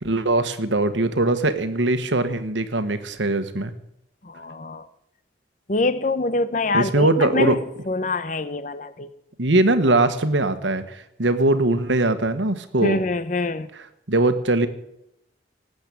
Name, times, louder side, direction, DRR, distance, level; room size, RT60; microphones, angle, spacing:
voice 1, 0.0-3.7 6.7-7.6 9.4-13.0 13.7-14.7, right 2 dB, 80° right, 1.4 m, -21 dB
voice 2, 4.2-4.9 5.7-7.6 7.9-9.1 12.8-13.7, left 2 dB, 45° left, 0.9 m, -25 dB
18.5 x 8.0 x 8.4 m
head